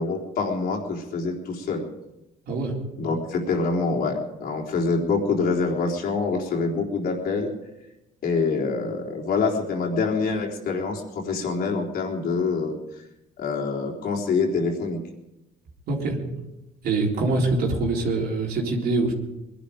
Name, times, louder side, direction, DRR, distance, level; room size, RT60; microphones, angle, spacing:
voice 1, 0.0-1.9 3.0-7.5 8.2-12.8 13.4-15.0, left 4 dB, 60° left, 0 dB, 3.7 m, -25 dB
voice 2, 15.9-16.2 16.8-19.1, right 3 dB, 65° right, -2 dB, 3.7 m, -24 dB
21.5 x 11.5 x 5.1 m, 0.94 s
cardioid pair, 110°, 17 cm